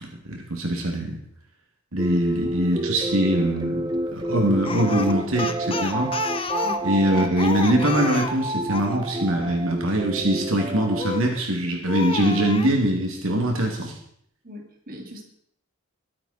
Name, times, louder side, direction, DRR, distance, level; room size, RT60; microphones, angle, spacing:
voice 1, 0.0-1.2 1.9-6.1 6.8-14.0, right 1 dB, 70° right, 1 dB, 2.7 m, -23 dB
sound 1, 2.0-11.1, right 1 dB, 20° right, 1.1 m, -29 dB
Speech, 4.6-9.0 11.0-11.4 11.9-12.7, left 4 dB, 25° left, 0.9 m, -31 dB
voice 2, 14.4-15.2, left 1 dB, 45° right, 1 dB, 2.8 m, -39 dB
22.0 x 9.1 x 4.4 m, 0.66 s
head